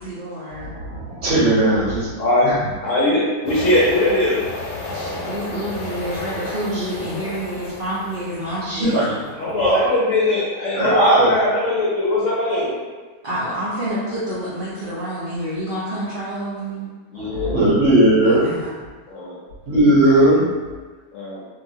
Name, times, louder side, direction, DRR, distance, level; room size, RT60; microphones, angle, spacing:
voice 1, 0.0-0.7 4.9-9.4 13.2-16.9 18.2-18.7, right 1 dB, 75° right, -11 dB, 0.4 m, -28 dB
voice 2, 0.6-2.1 2.4-2.6 6.7-6.8 8.6-9.1 9.4-9.9 10.8-11.3 17.1-18.5 19.7-20.4, right 1 dB, 55° right, -9 dB, 1.0 m, -17 dB
voice 3, 2.2-2.5 2.8-4.4 9.4-12.7 17.1-17.5 19.1-19.4 21.1-21.4, left 2 dB, 65° left, -7 dB, 0.8 m, -20 dB
sound 1, 3.5-9.2, left 2 dB, 85° left, 1.2 m, -32 dB
2.7 x 2.4 x 2.7 m, 1.4 s
omnidirectional pair, 1.8 m